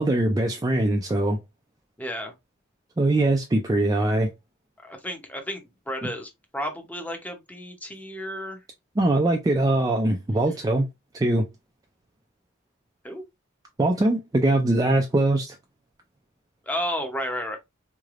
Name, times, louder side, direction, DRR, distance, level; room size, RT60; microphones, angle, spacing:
voice 1, 0.0-1.4 3.0-4.3 9.0-10.9 11.1-11.5 13.8-15.6, right 2 dB, 15° right, 0.3 m, -22 dB
voice 2, 2.0-2.3 4.8-8.6 13.0-13.2 16.7-17.6, equal, 5° left, 0.7 m, -32 dB
3.7 x 3.3 x 2.4 m
head